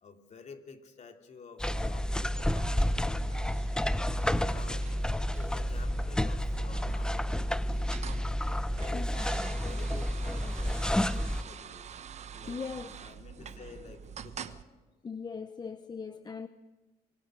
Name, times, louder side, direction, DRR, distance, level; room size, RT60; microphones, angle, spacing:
voice 1, 0.0-3.8 4.1-7.8 8.6-12.0 12.3-14.6, left 5 dB, 45° left, 3.1 m, -52 dB
sound 1, 1.6-11.4, left 1 dB, 5° left, 0.7 m, -30 dB
sound 2, 2.1-14.6, right 8 dB, 40° right, 1.0 m, -47 dB
voice 2, 12.5-13.0 13.4-13.6 15.0-16.5, left 5 dB, 25° left, 0.9 m, -40 dB
25.5 x 24.0 x 6.3 m
cardioid pair, 110°, 17 cm